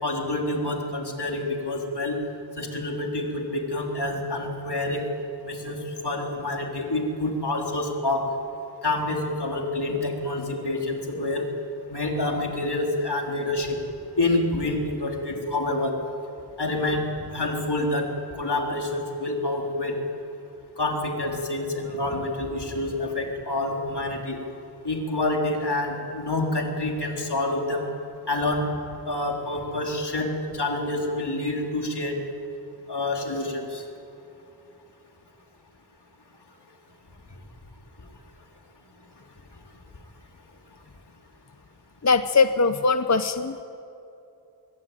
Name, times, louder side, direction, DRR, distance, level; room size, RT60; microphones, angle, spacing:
voice 1, 0.0-2.2 2.6-5.1 5.4-8.3 8.8-11.5 11.9-13.8 14.2-15.9 16.6-18.1 18.3-19.9 20.8-24.4 24.8-27.9 28.3-28.6 29.0-32.1 32.9-33.9, left 2 dB, 90° left, 1 dB, 3.8 m, -27 dB
voice 2, 42.0-43.6, left 4 dB, 45° left, 10 dB, 0.9 m, -21 dB
26.0 x 22.0 x 9.2 m, 2.8 s
wide cardioid pair, 60°, 39 cm